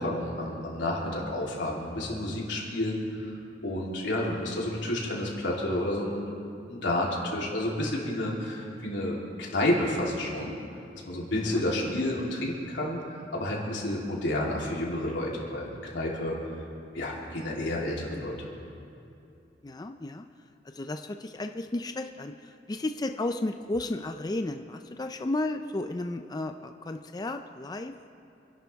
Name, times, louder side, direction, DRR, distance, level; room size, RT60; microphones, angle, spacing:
voice 1, 0.0-6.3 6.7-10.6 11.0-16.4 16.9-18.4, left 1 dB, 85° left, -4 dB, 3.2 m, -30 dB
voice 2, 19.6-20.2 20.7-27.9, left 2 dB, 20° left, 6 dB, 0.4 m, -33 dB
27.5 x 11.5 x 3.5 m, 2.6 s
head